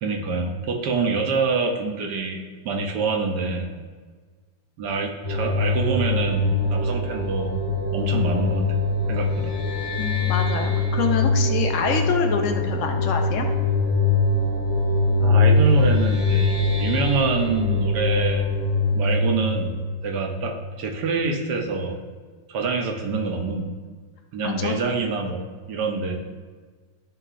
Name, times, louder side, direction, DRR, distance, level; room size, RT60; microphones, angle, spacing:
voice 1, 0.0-2.4 2.6-3.7 4.8-7.5 7.9-8.6 9.1-9.5 15.2-16.5 16.8-18.5 18.9-19.8 20.0-22.0 22.5-23.7 24.3-26.1, right 4 dB, 70° right, 2 dB, 1.3 m, -26 dB
sound 1, 5.2-20.7, left 3 dB, 35° left, 0.4 m, -23 dB
voice 2, 10.0-13.5 24.4-24.8, left 6 dB, 75° left, 4 dB, 0.7 m, -26 dB
10.5 x 3.8 x 2.4 m, 1.5 s
omnidirectional pair, 1.9 m